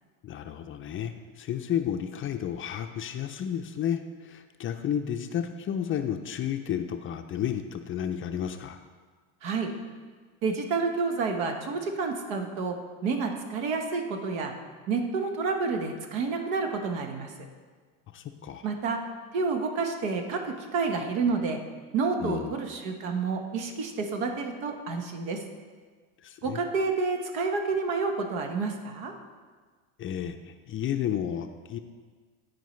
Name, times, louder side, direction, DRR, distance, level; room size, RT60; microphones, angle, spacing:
voice 1, 0.2-8.8 18.1-18.6 22.2-22.5 26.2-26.6 30.0-30.4 30.7-31.8, left 9 dB, 30° left, 6 dB, 0.4 m, -32 dB
voice 2, 9.4-9.7 10.4-12.8 13.0-14.5 14.9-17.3 18.6-19.0 19.3-21.6 21.9-25.4 26.4-29.1, right 4 dB, 75° right, 4 dB, 1.2 m, -29 dB
13.5 x 4.7 x 3.2 m, 1.5 s
supercardioid pair, 100°, 41 cm